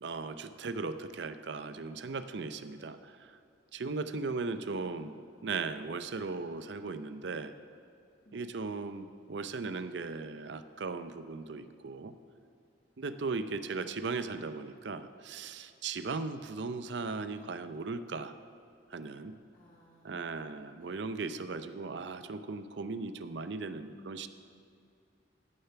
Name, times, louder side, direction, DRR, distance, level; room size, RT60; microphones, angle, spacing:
voice 1, 0.0-3.3 3.7-5.1 5.4-7.5 8.3-12.1 13.0-18.4 18.9-19.3 20.0-24.3, right 4 dB, 65° right, 11 dB, 0.6 m, -37 dB
voice 2, 4.1-5.1 8.2-8.5 13.3-14.0 16.0-16.2 19.5-20.4 20.7-20.9 23.7-24.3, left 1 dB, 45° left, -4 dB, 1.4 m, -59 dB
14.5 x 6.8 x 5.8 m, 2.5 s
head